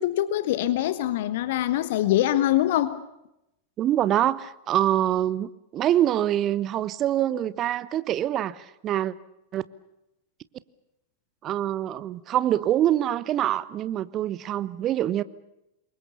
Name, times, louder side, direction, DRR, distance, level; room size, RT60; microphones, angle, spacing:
voice 1, 0.0-3.0, left 13 dB, 55° left, 1.2 m, -24 dB
voice 2, 3.8-9.1 9.5-9.6 11.4-15.2, right 12 dB, 30° right, 1.0 m, -25 dB
27.5 x 23.5 x 6.9 m
figure-of-eight pair, 90°, 0 cm